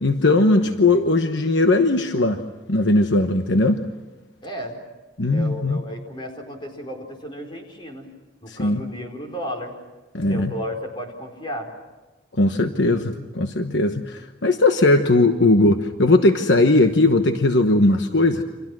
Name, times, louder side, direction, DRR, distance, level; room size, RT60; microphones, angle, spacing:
voice 1, 0.0-2.4 2.7-3.8 5.2-5.8 8.5-8.8 10.1-10.5 12.4-18.4, left 2 dB, 65° left, 6 dB, 1.2 m, -18 dB
voice 2, 0.6-1.0 4.4-4.8 5.2-8.1 8.4-9.7 10.1-11.7, equal, 25° left, 2 dB, 4.5 m, -34 dB
29.5 x 26.5 x 6.2 m, 1.2 s
head